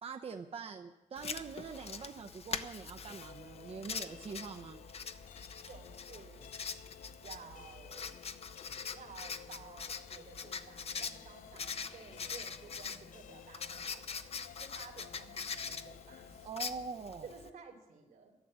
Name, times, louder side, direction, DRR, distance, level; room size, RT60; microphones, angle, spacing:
voice 1, 0.0-4.8 16.4-17.3, right 5 dB, 50° right, 5 dB, 0.7 m, -44 dB
Writing, 1.2-17.5, left 6 dB, 50° left, 0.8 m, -43 dB
sound 1, 3.1-16.5, left 9 dB, 80° left, 0.4 m, -55 dB
voice 2, 5.6-6.5 7.2-8.1 8.9-14.2 14.6-16.6 17.2-18.4, right 5 dB, 85° right, 3 dB, 3.0 m, -54 dB
11.5 x 11.5 x 7.5 m, 1.1 s
cardioid pair, 100°, 13 cm